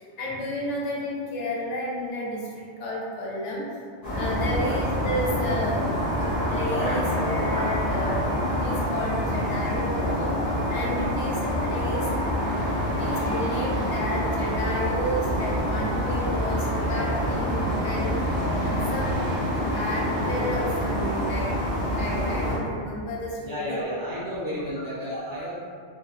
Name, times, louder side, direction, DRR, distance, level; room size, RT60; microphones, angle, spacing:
voice 1, 0.0-3.7 4.1-8.2 8.5-12.5 12.9-18.4 18.7-19.3 19.6-21.5 21.8-23.8 24.1-24.2, left 1 dB, 85° left, -4 dB, 0.9 m, -32 dB
sound 1, 4.0-22.6, equal, 35° left, 0.8 m, -26 dB
voice 2, 23.4-25.6, equal, 30° right, -9 dB, 0.4 m, -32 dB
2.6 x 2.2 x 2.3 m, 2.1 s
omnidirectional pair, 1.2 m